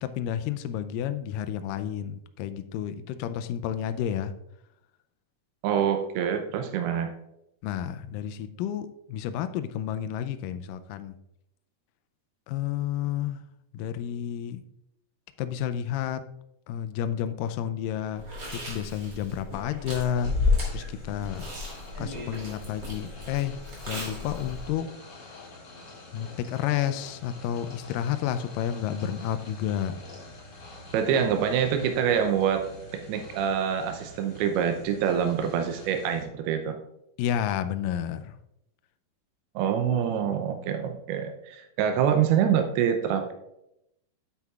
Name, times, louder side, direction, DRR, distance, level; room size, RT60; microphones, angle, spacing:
voice 1, 0.0-4.3 7.6-11.2 12.5-13.4 13.7-14.6 15.4-16.2 16.7-18.3 18.5-20.3 20.7-21.4 22.0-23.6 23.9-24.9 26.1-30.0 37.2-38.4, left 10 dB, 85° left, 10 dB, 1.9 m, -31 dB
voice 2, 5.6-7.1 30.9-36.8 39.6-43.3, right 8 dB, 90° right, 5 dB, 2.7 m, -26 dB
Chewing mastication, 18.2-24.7, left 3 dB, 30° right, 2.8 m, -32 dB
sound 1, 20.1-36.2, left 2 dB, 40° left, 1.7 m, -47 dB
9.2 x 8.2 x 2.3 m, 0.82 s
omnidirectional pair, 4.4 m